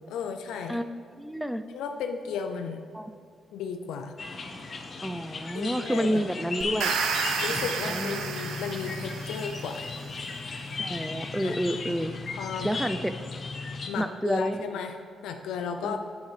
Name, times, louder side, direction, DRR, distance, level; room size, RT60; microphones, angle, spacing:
voice 1, 0.1-0.8 1.7-2.8 3.5-4.1 5.5-6.2 7.4-9.9 11.4-11.6 12.3-12.7 13.9-15.0 15.2-16.0, left 6 dB, 85° left, 6 dB, 0.4 m, -34 dB
voice 2, 1.2-1.6 2.9-3.1 5.0-6.9 7.5-7.6 7.9-8.2 10.8-12.1 12.6-13.1 14.0-14.6 15.8-16.0, equal, 5° right, 10 dB, 0.5 m, -29 dB
sound 1, 4.2-13.9, left 3 dB, 50° left, 0.9 m, -36 dB
sound 2, 6.6-9.8, right 6 dB, 90° right, 0.6 m, -31 dB
9.2 x 7.4 x 3.3 m, 2.3 s
supercardioid pair, 65°, 0 cm